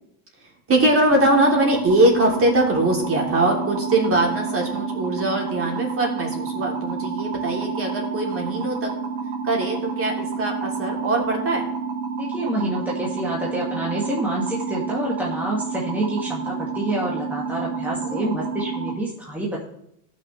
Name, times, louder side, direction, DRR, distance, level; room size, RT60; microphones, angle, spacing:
voice 1, 0.7-8.9 9.4-11.6 18.0-18.3, right 1 dB, 30° right, 0 dB, 3.3 m, -22 dB
sound 1, 1.1-18.9, right 5 dB, 85° right, 3.3 m, -29 dB
voice 2, 12.2-19.6, right 1 dB, 5° right, -4 dB, 2.1 m, -28 dB
17.5 x 6.2 x 3.4 m, 0.76 s
supercardioid pair, 105°, 46 cm